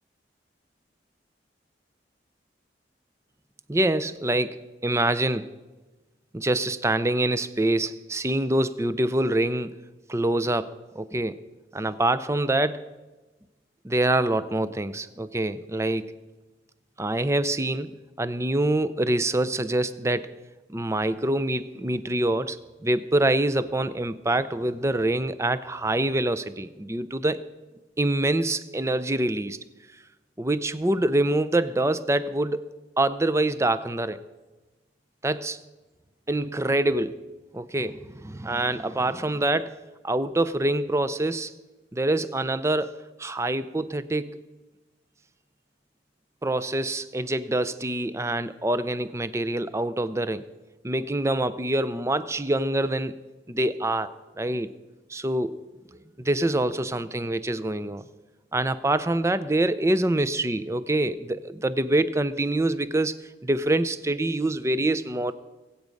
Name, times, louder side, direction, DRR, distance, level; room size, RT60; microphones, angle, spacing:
voice 1, 3.7-5.5 6.3-9.8 10.1-11.4 11.7-12.8 13.8-16.1 17.0-17.9 18.2-20.3 20.7-22.6 22.8-27.4 28.0-29.6 30.4-32.7 33.0-34.2 35.2-35.6 36.3-37.2 37.5-39.8 40.0-41.5 41.9-44.4 46.4-50.5 50.8-53.2 53.5-54.7 55.1-55.6 56.2-58.0 58.5-65.3, right 1 dB, 15° right, 14 dB, 0.5 m, -25 dB
22.5 x 8.5 x 5.3 m, 1.2 s
head